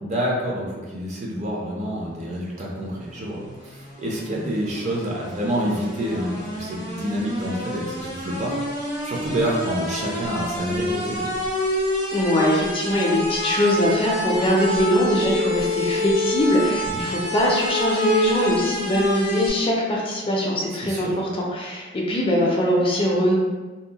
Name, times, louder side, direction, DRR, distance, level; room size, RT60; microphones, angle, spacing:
voice 1, 0.0-8.6 9.0-11.3 16.9-17.0 20.8-21.2, right 1 dB, 35° right, -3 dB, 0.5 m, -28 dB
sound 1, 2.8-19.5, left 1 dB, 80° right, 1.4 m, -28 dB
voice 2, 12.1-23.3, equal, 25° left, -2 dB, 0.4 m, -22 dB
2.7 x 2.0 x 2.8 m, 1.3 s
head